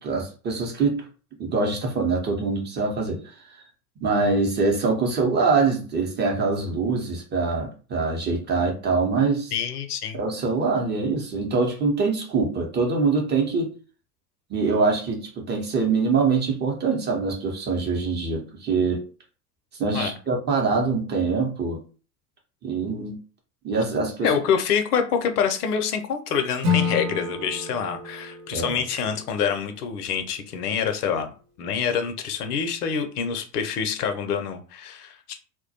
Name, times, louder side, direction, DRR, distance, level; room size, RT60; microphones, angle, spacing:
voice 1, 0.0-1.0 1.4-3.2 4.0-9.5 10.1-13.7 14.5-19.0 19.8-21.8 22.6-23.2 23.6-24.3 28.5-28.7, right 4 dB, 20° right, 0.7 m, -24 dB
voice 2, 9.5-10.2 19.9-20.1 24.2-35.4, left 7 dB, 75° left, 0.6 m, -26 dB
Acoustic guitar / Strum, 26.6-29.8, left 5 dB, 65° right, 0.9 m, -29 dB
2.2 x 2.1 x 2.7 m
figure-of-eight pair, 80°, 47 cm